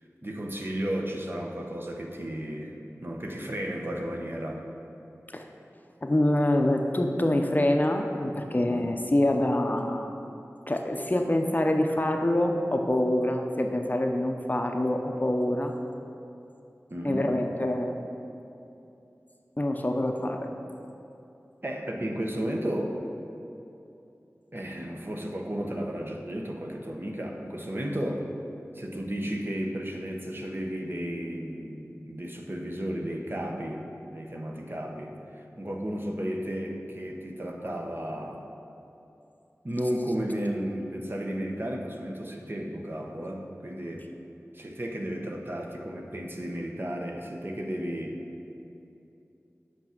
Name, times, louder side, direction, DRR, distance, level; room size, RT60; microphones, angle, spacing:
voice 1, 0.2-2.8 3.0-4.6 8.7-8.9 16.9-17.3 21.6-23.0 24.5-28.2 28.7-33.9 34.1-38.4 39.6-44.1 44.5-48.2, equal, 40° right, 1 dB, 1.0 m, -33 dB
voice 2, 6.0-10.1 10.7-15.7 17.0-17.9 19.6-20.5, left 1 dB, 35° left, 3 dB, 0.7 m, -25 dB
8.4 x 6.5 x 6.0 m, 2.8 s
wide cardioid pair, 55°, 5 cm